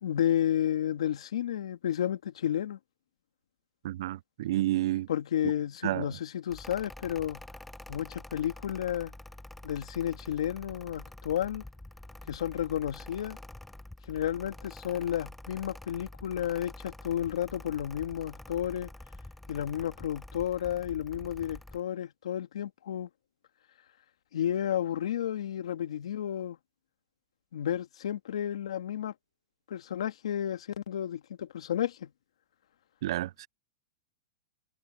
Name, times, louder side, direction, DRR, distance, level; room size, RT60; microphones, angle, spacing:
voice 1, 0.0-2.8 5.1-7.4 7.9-9.1 9.6-11.6 12.3-13.4 14.1-18.9 19.5-23.1 24.3-26.6 27.5-29.1 29.7-32.1, left 10 dB, 85° left, 2.0 m, -32 dB
voice 2, 3.8-5.1 5.8-6.1 33.0-33.5, right 15 dB, 55° right, 0.4 m, -30 dB
Mechanical fan, 6.5-21.8, left 1 dB, 5° left, 0.8 m, -47 dB
supercardioid pair, 165°, 3 cm